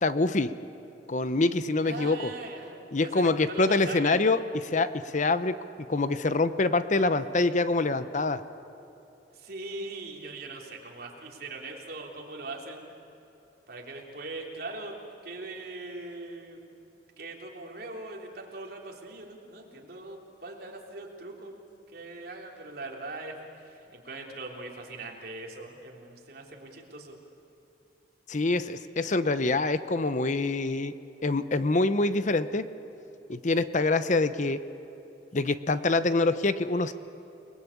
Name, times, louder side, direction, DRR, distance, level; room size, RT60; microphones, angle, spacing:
voice 1, 0.0-0.5 1.1-2.3 2.9-5.6 5.9-8.4 28.3-30.9 31.2-32.6 33.3-34.6 35.3-36.9, left 3 dB, 45° left, 12 dB, 0.8 m, -25 dB
voice 2, 1.8-4.2 9.3-13.0 13.7-16.8 17.2-21.6 21.9-23.4 23.6-27.2, right 2 dB, 55° right, 0 dB, 3.5 m, -41 dB
29.5 x 20.5 x 8.6 m, 2.9 s
head